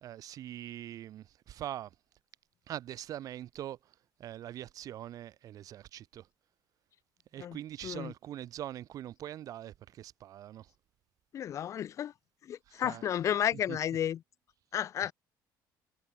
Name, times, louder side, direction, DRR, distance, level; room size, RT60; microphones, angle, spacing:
voice 1, 0.0-1.9 2.7-3.9 4.2-6.3 7.3-10.7 12.7-13.0 13.7-13.8, right 12 dB, 50° right, 2.0 m, -43 dB
voice 2, 11.3-12.1 12.4-14.2 14.7-15.1, left 10 dB, 40° left, 1.5 m, -32 dB
cardioid pair, 165°, 8 cm